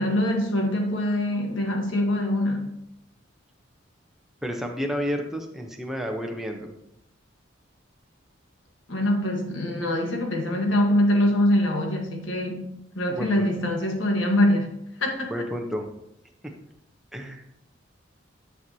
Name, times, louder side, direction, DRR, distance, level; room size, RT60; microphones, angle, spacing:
voice 1, 0.0-2.7 8.9-12.7 12.9-14.7 15.0-15.3, left 1 dB, 75° left, 2 dB, 1.5 m, -24 dB
voice 2, 4.4-6.7 13.1-13.5 15.3-15.9 16.4-16.5 17.1-17.4, equal, ahead, 2 dB, 0.8 m, -31 dB
10.5 x 6.2 x 2.8 m, 0.79 s
head